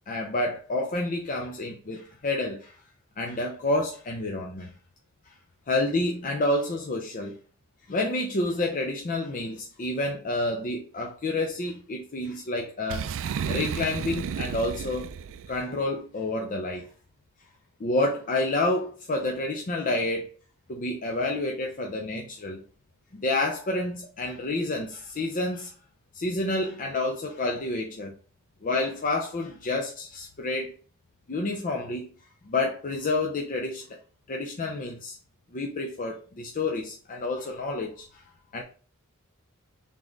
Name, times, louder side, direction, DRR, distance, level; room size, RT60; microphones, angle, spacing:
voice 1, 0.1-2.8 3.2-4.7 5.7-7.3 7.9-13.1 13.5-15.1 15.5-16.9 17.8-20.3 20.7-22.6 23.1-25.7 26.1-28.1 28.6-30.8 31.3-32.1 32.4-34.0 34.3-35.2 35.5-38.2 38.5-38.6, left 2 dB, 40° left, 0.6 m, -29 dB
Boom, 12.9-15.6, right 7 dB, 60° right, 0.3 m, -32 dB
4.0 x 3.6 x 3.1 m
head